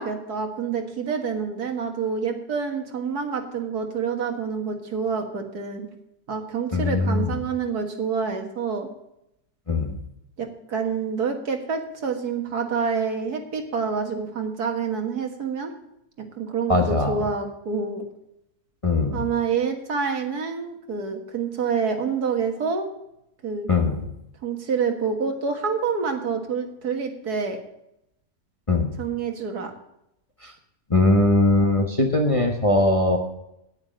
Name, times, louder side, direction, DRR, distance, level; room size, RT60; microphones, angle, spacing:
voice 1, 0.0-5.9 6.3-8.9 10.4-15.7 16.2-18.0 19.1-22.8 23.4-23.7 24.4-27.6 29.0-29.7, right 5 dB, 65° right, 4 dB, 2.2 m, -27 dB
voice 2, 6.7-7.3 9.7-10.0 16.7-17.2 18.8-19.3 23.7-24.1 28.7-28.9 30.4-30.5 30.9-33.2, left 2 dB, 20° left, 2 dB, 1.2 m, -20 dB
9.5 x 9.4 x 6.5 m, 0.81 s
omnidirectional pair, 1.8 m